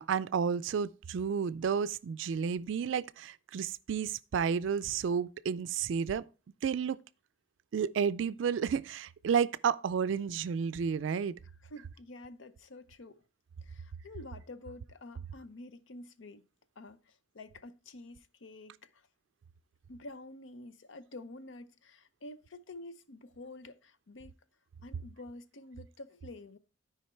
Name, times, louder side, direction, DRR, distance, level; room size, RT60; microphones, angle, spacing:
voice 1, 0.0-6.2 6.6-7.0 7.7-11.3, right 7 dB, 75° right, 0.3 m, -31 dB
voice 2, 11.6-13.2 13.6-16.4 16.8-19.1 19.9-24.3 24.8-26.6, left 2 dB, 80° left, 0.7 m, -49 dB
12.5 x 4.9 x 4.4 m
head